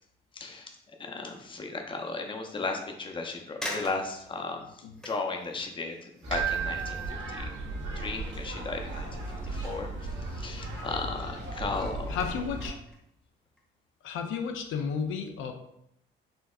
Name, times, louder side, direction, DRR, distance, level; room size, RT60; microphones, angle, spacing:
voice 1, 0.3-7.4 8.0-9.9 10.3-12.2, left 3 dB, 25° left, 3 dB, 0.5 m, -36 dB
sound 1, 1.2-1.6 2.2-2.3 3.1-3.2 3.6-8.6 8.8-10.3 10.6-11.0 11.5-13.0 13.4-13.6, left 1 dB, 5° left, 0.8 m, -45 dB
sound 2, 6.2-12.7, right 2 dB, 65° right, 1.5 m, -36 dB
Keyboard (musical), 6.3-8.1, right 10 dB, 85° right, 1.2 m, -35 dB
voice 2, 12.1-12.8 14.0-15.5, left 6 dB, 80° left, 5 dB, 0.4 m, -32 dB
4.2 x 2.7 x 2.4 m, 0.78 s
cardioid pair, 90°, 20 cm